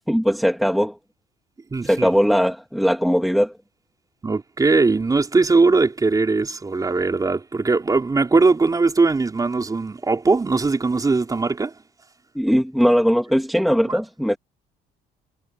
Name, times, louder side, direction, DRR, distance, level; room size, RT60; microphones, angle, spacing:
voice 1, 0.1-0.9 1.8-3.5 12.4-14.4, equal, ahead, 1.9 m, -19 dB
voice 2, 1.7-2.1 4.2-11.7 13.8-14.0, right 3 dB, 20° right, 4.7 m, -20 dB
cardioid pair, 110°, 17 cm